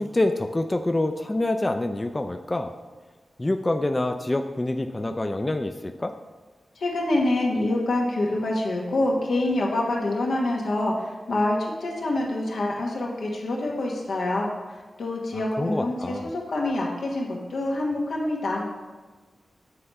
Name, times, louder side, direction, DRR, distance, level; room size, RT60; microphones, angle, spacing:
voice 1, 0.0-2.7 3.4-6.1 15.3-16.3, left 2 dB, 25° left, 7 dB, 0.4 m, -26 dB
voice 2, 6.8-14.5 15.0-18.7, left 2 dB, 85° left, -2 dB, 1.2 m, -26 dB
7.6 x 3.3 x 5.4 m, 1.3 s
cardioid pair, 70°, 0 cm